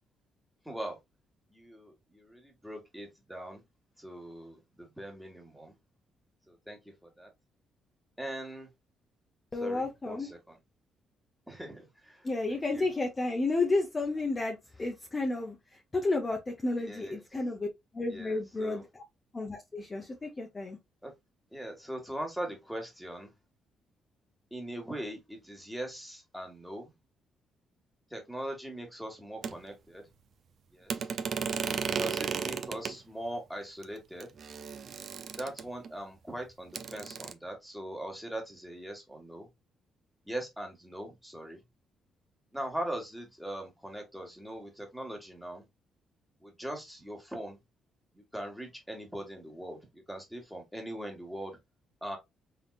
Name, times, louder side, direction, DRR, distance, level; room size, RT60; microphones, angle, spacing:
voice 1, 0.6-1.0 1.5-3.6 4.0-5.7 6.5-7.3 8.2-8.7 9.6-10.6 11.5-12.9 16.8-17.1 18.1-18.8 21.0-21.1 21.5-23.3 24.5-26.9 28.1-30.1 30.7-31.1 32.0-34.4 35.4-39.5 40.2-41.6 42.5-45.6 46.4-47.6 48.1-51.6 52.0-52.2, right 1 dB, ahead, 1.7 m, -41 dB
voice 2, 9.5-10.3 12.2-17.7 17.9-19.0 19.3-20.8, left 2 dB, 25° left, 0.9 m, -32 dB
sound 1, 29.4-29.5 30.9-32.9 33.8-33.9 34.2-35.9 36.7-37.3, right 6 dB, 55° right, 0.5 m, -34 dB
3.9 x 3.5 x 2.4 m
cardioid pair, 90°, 0 cm